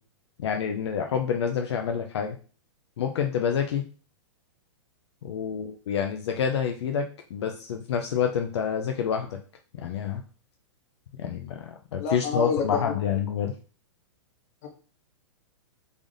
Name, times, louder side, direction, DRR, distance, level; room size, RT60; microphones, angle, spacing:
voice 1, 0.4-2.4 3.0-3.8 5.2-9.4 9.7-10.2 11.2-13.5, left 7 dB, 60° left, 4 dB, 0.5 m, -28 dB
voice 2, 12.0-13.0 14.6-14.7, left 5 dB, 30° left, 2 dB, 0.8 m, -29 dB
3.4 x 2.5 x 3.7 m, 0.37 s
supercardioid pair, 180°, 16 cm